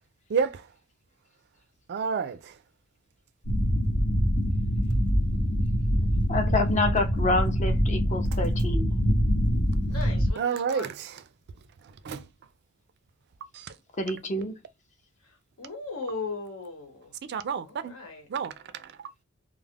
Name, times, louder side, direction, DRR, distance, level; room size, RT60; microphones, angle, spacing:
voice 1, 0.3-0.7 1.9-2.6 10.4-11.2 11.8-12.3 13.5-13.8 17.3-17.9 18.3-19.1, right 6 dB, 50° right, 0.3 m, -30 dB
sound 1, 3.4-10.3, equal, 65° left, 0.9 m, -24 dB
voice 2, 6.3-8.9 14.0-14.5, left 2 dB, 35° left, 0.5 m, -27 dB
voice 3, 9.9-10.4 10.7-10.9 15.2-17.1 17.7-18.3, left 4 dB, 85° left, 1.2 m, -37 dB
2.3 x 2.0 x 3.3 m
head